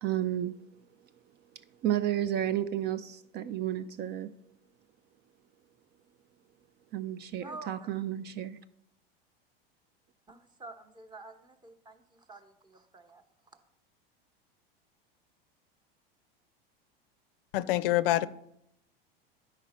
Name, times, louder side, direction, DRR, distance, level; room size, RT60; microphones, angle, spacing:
voice 1, 0.0-0.6 1.8-4.3 6.9-8.6, right 11 dB, 35° right, 0.4 m, -32 dB
voice 2, 7.4-8.0 10.3-13.2, right 2 dB, 15° right, 0.9 m, -48 dB
voice 3, 17.5-18.3, left 15 dB, 70° left, 0.5 m, -26 dB
9.7 x 5.1 x 4.2 m
hypercardioid pair, 105°, 29 cm